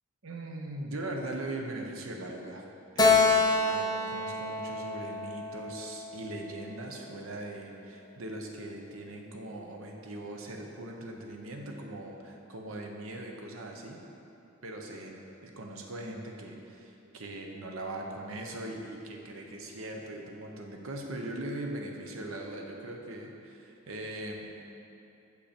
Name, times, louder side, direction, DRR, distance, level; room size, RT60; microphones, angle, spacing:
voice 1, 0.2-2.7 2.9-14.0 14.6-24.5, right 1 dB, 80° right, 1 dB, 0.8 m, -40 dB
Keyboard (musical), 3.0-6.4, left 3 dB, 20° left, 0.5 m, -27 dB
6.5 x 5.5 x 4.3 m, 2.8 s
head